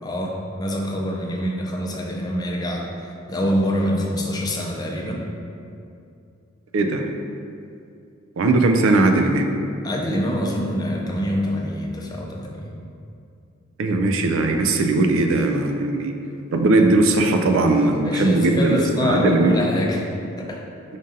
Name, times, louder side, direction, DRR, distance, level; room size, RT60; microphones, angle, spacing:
voice 1, 0.0-5.3 9.8-12.8 18.0-20.1 20.4-20.6, equal, 20° left, -1 dB, 0.5 m, -25 dB
voice 2, 6.7-7.1 8.4-9.5 13.8-16.1 16.5-19.5, right 2 dB, 70° right, 4 dB, 0.4 m, -19 dB
5.1 x 2.7 x 3.7 m, 2.5 s
head